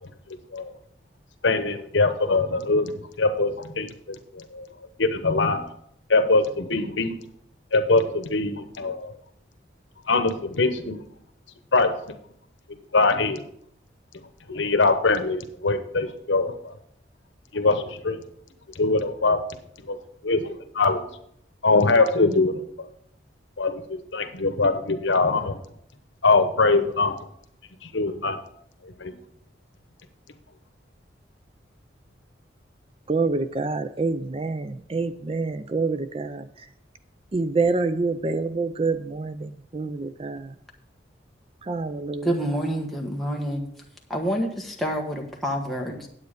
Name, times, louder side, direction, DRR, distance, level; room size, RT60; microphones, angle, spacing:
voice 1, 1.4-4.7 5.0-5.6 6.1-7.1 7.7-9.1 10.1-11.0 11.7-11.9 12.9-13.4 14.5-16.7 17.5-18.2 18.8-19.4 19.9-20.0 20.2-21.0 21.6-22.9 23.6-25.6 26.2-27.2 27.8-28.4 28.8-29.1, left 3 dB, 85° left, 9 dB, 1.0 m, -22 dB
voice 2, 33.1-36.4 37.3-40.5 41.7-42.3, right 3 dB, 30° right, 12 dB, 0.4 m, -26 dB
voice 3, 42.2-43.6 44.1-46.1, equal, ahead, -1 dB, 1.2 m, -27 dB
9.4 x 8.2 x 5.0 m, 0.71 s
head